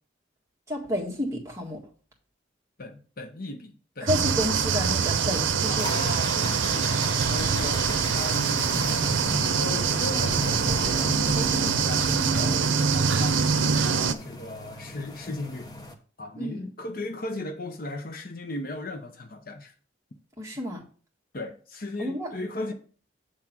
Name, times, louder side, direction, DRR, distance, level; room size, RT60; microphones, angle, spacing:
voice 1, 0.7-1.8 4.0-5.9 6.4-6.5 16.4-16.7 20.4-20.8 22.0-22.3, equal, 15° right, 1.7 m, -30 dB
voice 2, 2.8-4.5 5.6-9.1 9.5-13.4 13.8-15.7 16.2-19.7 21.3-22.7, left 2 dB, 50° left, 0.8 m, -36 dB
sound 1, 4.1-14.1, right 6 dB, 85° right, 0.6 m, -24 dB
sound 2, 5.8-15.9, left 2 dB, 20° left, 0.9 m, -37 dB
8.2 x 3.7 x 5.9 m
head